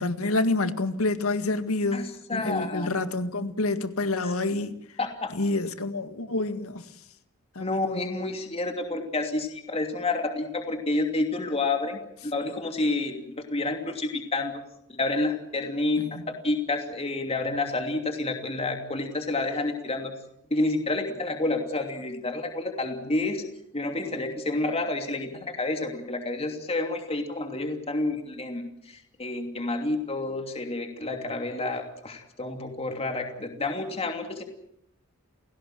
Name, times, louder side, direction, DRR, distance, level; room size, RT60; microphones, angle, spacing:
voice 1, 0.0-5.0 5.3-6.9 7.6-8.0 16.0-16.2, left 2 dB, 80° left, 1.9 m, -28 dB
voice 2, 2.3-2.9 4.2-4.3 5.0-5.3 7.6-14.6 14.9-20.1 20.5-23.4 23.7-34.4, left 2 dB, 30° left, 2.9 m, -29 dB
30.0 x 17.5 x 7.7 m
head